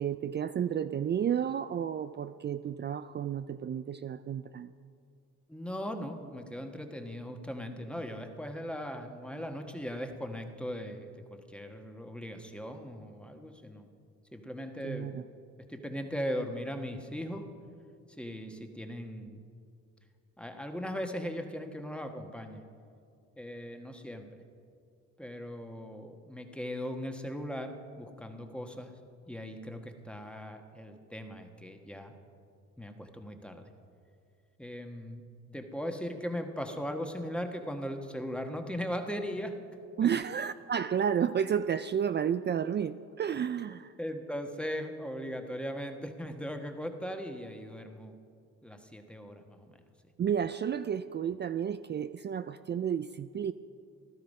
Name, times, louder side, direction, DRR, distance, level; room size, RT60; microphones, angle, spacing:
voice 1, 0.0-4.7 14.8-15.2 40.0-43.9 50.2-53.5, right 8 dB, 35° right, 12 dB, 0.4 m, -31 dB
voice 2, 5.5-13.9 14.3-15.2 15.6-17.5 18.1-19.4 20.4-22.6 23.3-24.3 25.2-28.9 29.3-32.1 32.8-33.7 34.6-35.2 35.5-39.6 44.0-48.1 48.6-49.7, equal, 5° left, 4 dB, 1.3 m, -38 dB
15.5 x 12.5 x 5.4 m, 2.3 s
cardioid pair, 90°, 30 cm